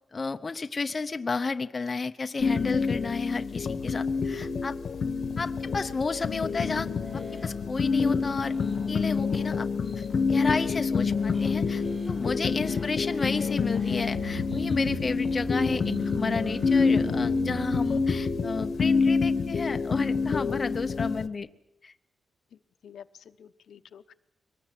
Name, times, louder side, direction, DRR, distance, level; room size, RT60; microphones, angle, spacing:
voice 1, 0.1-4.8 5.4-8.5 8.9-9.7 10.0-21.5 21.8-21.9, left 4 dB, 30° left, 7 dB, 0.8 m, -32 dB
sound 1, 2.4-21.3, left 5 dB, 50° left, 1.2 m, -27 dB
sound 2, 6.6-17.4, equal, 25° right, 4.4 m, -50 dB
sound 3, 13.6-20.0 20.3-20.4, right 4 dB, 85° right, 2.2 m, -39 dB
voice 2, 22.8-24.1, left 8 dB, 75° left, 10 dB, 0.9 m, -49 dB
23.0 x 19.5 x 9.1 m, 0.88 s
wide cardioid pair, 160°, 0 cm